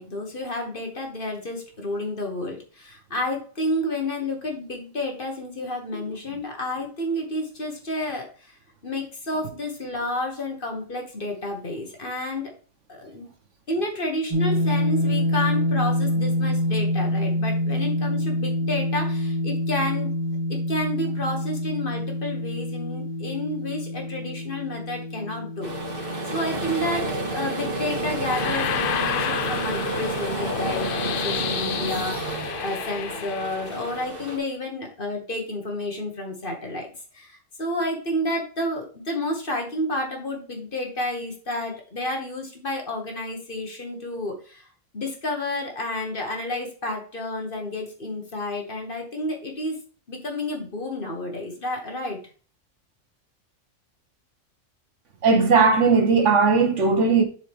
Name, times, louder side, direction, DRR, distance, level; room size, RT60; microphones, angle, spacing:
voice 1, 0.0-8.5 8.8-12.5 12.9-13.3 13.7-20.1 20.5-36.9 37.1-44.6 44.9-49.8 50.1-52.2, left 1 dB, 40° left, 1.6 m, -30 dB
sound 1, 14.3-30.3, left 1 dB, 20° right, 2.2 m, -27 dB
sound 2, 25.6-34.4, right 2 dB, 40° right, 2.2 m, -30 dB
sound 3, 28.3-34.0, left 9 dB, 65° left, 0.5 m, -30 dB
voice 2, 55.2-57.2, right 4 dB, 65° right, 1.5 m, -18 dB
7.4 x 4.8 x 3.5 m
omnidirectional pair, 1.4 m